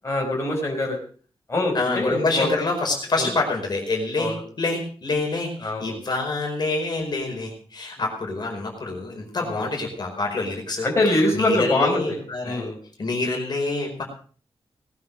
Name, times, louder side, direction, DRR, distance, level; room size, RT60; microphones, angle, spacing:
voice 1, 0.0-1.0 1.5-2.5 3.2-3.3 4.2-4.4 5.6-6.0 9.4-9.7 10.8-12.8, left 2 dB, 30° left, -1 dB, 4.7 m, -24 dB
voice 2, 1.7-10.9 11.3-12.7 13.0-14.0, left 3 dB, 45° left, 1 dB, 4.8 m, -26 dB
19.5 x 9.6 x 6.3 m, 0.43 s
wide cardioid pair, 155°, 10 cm